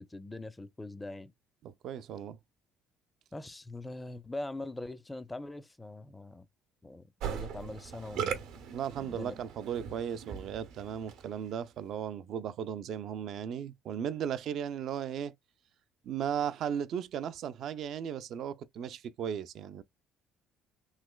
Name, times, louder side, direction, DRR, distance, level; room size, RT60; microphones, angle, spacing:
voice 1, 0.0-1.3 3.3-6.5 6.8-8.4 9.0-9.4, left 2 dB, 15° left, 0.4 m, -42 dB
voice 2, 1.6-2.4 8.7-15.3 16.0-19.8, right 8 dB, 60° right, 0.4 m, -36 dB
Musical instrument, 7.2-11.5, right 8 dB, 80° right, 0.8 m, -39 dB
3.2 x 3.0 x 2.2 m
supercardioid pair, 75°, 0 cm